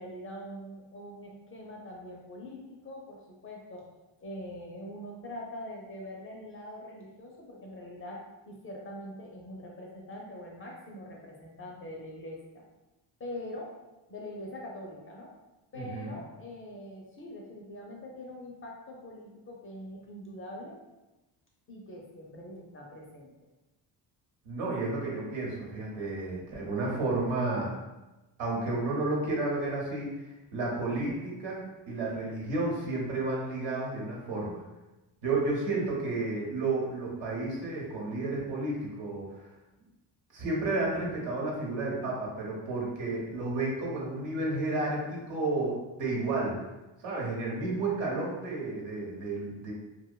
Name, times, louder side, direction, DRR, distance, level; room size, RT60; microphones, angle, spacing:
voice 1, 0.0-3.9 4.2-12.6 13.2-13.8 14.1-15.3 15.7-20.8 21.7-23.3, left 1 dB, 30° left, -2 dB, 0.4 m, -43 dB
voice 2, 15.7-16.2 24.4-27.7 28.4-31.6 31.9-34.6 35.2-39.5 40.3-46.6 47.0-49.7, right 2 dB, 75° right, -3 dB, 0.9 m, -32 dB
2.5 x 2.2 x 2.2 m, 1.0 s
cardioid pair, 100°, 45 cm